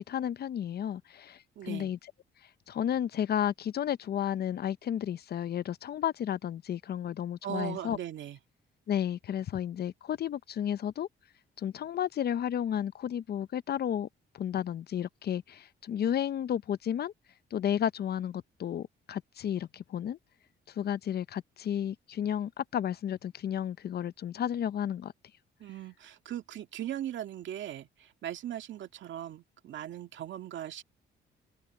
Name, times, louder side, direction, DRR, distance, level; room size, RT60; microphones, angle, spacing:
voice 1, 0.0-2.0 2.7-8.0 8.9-11.1 11.6-14.1 14.3-17.1 17.5-20.2 20.7-25.1, left 9 dB, 55° left, 0.6 m, -32 dB
voice 2, 1.6-1.9 7.4-8.4 25.6-30.8, right 11 dB, 70° right, 2.1 m, -39 dB
cardioid pair, 90°, 20 cm